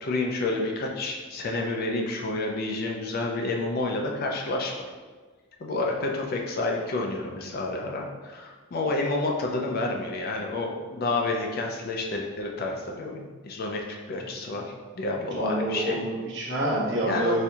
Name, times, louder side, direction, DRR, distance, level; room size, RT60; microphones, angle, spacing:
voice 1, 0.0-4.7 5.6-14.6 15.0-16.0 17.1-17.4, left 2 dB, 45° left, 0 dB, 0.4 m, -29 dB
voice 2, 15.3-17.4, right 1 dB, 55° right, -5 dB, 0.8 m, -27 dB
4.2 x 2.7 x 2.3 m, 1.4 s
head